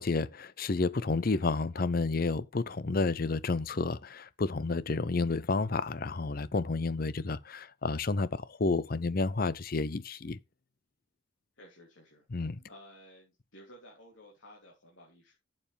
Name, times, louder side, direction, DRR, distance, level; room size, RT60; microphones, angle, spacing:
voice 1, 0.0-10.4 12.3-12.6, left 3 dB, 45° left, 0.6 m, -30 dB
voice 2, 11.6-12.2 12.6-15.4, equal, 75° left, 3.1 m, -54 dB
11.5 x 7.8 x 3.4 m
head